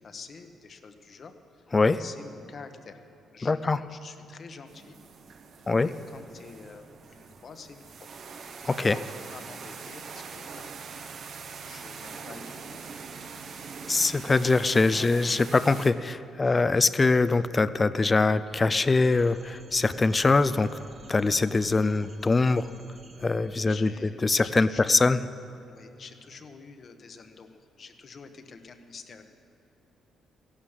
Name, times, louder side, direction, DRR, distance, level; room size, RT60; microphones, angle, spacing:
voice 1, 0.0-3.0 3.3-5.0 5.7-8.1 8.9-10.8 11.6-12.9 14.2-14.3 14.9-15.2 16.4-16.6 23.5-24.9 25.7-29.2, left 5 dB, 50° left, 7 dB, 1.2 m, -48 dB
voice 2, 3.4-3.8 5.7-5.9 8.6-9.0 13.9-20.7 21.1-22.7 23.2-23.9 24.2-25.2, left 3 dB, 25° left, 14 dB, 0.4 m, -23 dB
sound 1, 4.7-15.9, right 5 dB, 60° right, 1.0 m, -43 dB
sound 2, 18.5-23.7, right 2 dB, 30° right, 1.3 m, -51 dB
15.0 x 11.5 x 7.4 m, 3.0 s
cardioid pair, 90°, 0 cm